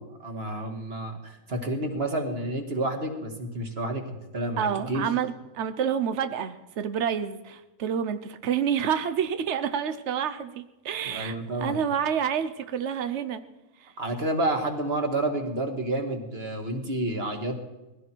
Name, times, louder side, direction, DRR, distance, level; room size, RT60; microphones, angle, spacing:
voice 1, 0.0-5.0 11.0-11.8 14.0-17.6, right 1 dB, 30° right, 4 dB, 1.9 m, -30 dB
voice 2, 4.6-13.4 13.8-13.9, right 8 dB, 80° right, 10 dB, 0.6 m, -28 dB
20.5 x 15.5 x 4.6 m, 1.1 s
omnidirectional pair, 2.2 m